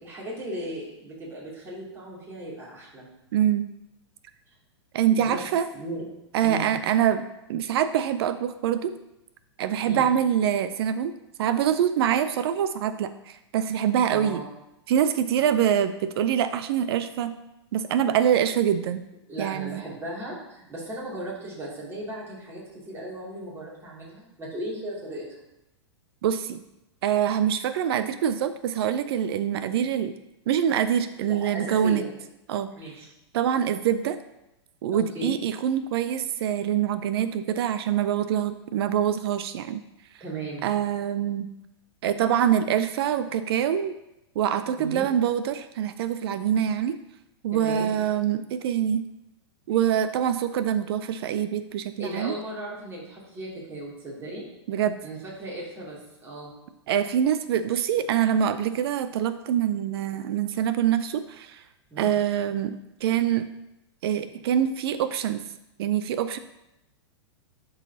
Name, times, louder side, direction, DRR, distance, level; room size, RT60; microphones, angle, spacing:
voice 1, 0.0-3.1 5.1-5.4 5.7-6.1 6.4-6.7 9.9-10.1 14.1-14.4 19.3-25.2 31.3-32.1 32.8-33.1 34.9-35.4 40.2-40.7 44.8-45.1 47.5-48.0 52.0-54.4 55.0-56.0 56.2-56.5 61.9-62.1, right 1 dB, 15° right, -6 dB, 2.5 m, -36 dB
voice 2, 3.3-3.6 4.9-5.7 6.3-7.2 7.5-8.9 9.6-11.1 11.4-14.4 14.9-17.3 17.7-19.0 19.4-19.8 26.2-26.6 27.0-30.1 30.5-32.0 32.5-32.7 33.3-34.2 34.8-39.8 40.6-41.5 42.0-43.9 44.4-47.0 47.4-49.0 49.7-52.4 54.7-55.0 56.9-61.6 62.0-63.5 64.0-65.4 65.8-66.4, right 9 dB, 60° right, 12 dB, 0.4 m, -25 dB
11.0 x 3.9 x 2.8 m, 0.89 s
hypercardioid pair, 110°, 15 cm